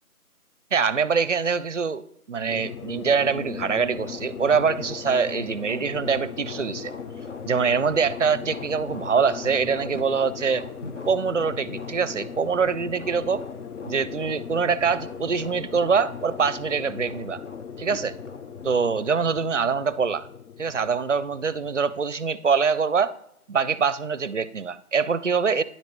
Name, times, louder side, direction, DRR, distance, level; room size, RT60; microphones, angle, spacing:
voice 1, 0.7-6.9 7.4-10.7 11.1-13.4 13.8-17.4 17.8-18.1 18.6-20.3 20.6-23.1 23.5-25.6, right 5 dB, 55° right, 17 dB, 0.5 m, -24 dB
sound 1, 2.5-22.0, left 8 dB, 90° left, 0.6 m, -39 dB
sound 2, 3.0-19.2, left 2 dB, 55° left, 1.1 m, -42 dB
9.9 x 8.5 x 3.0 m, 0.76 s
figure-of-eight pair, 175°, 44 cm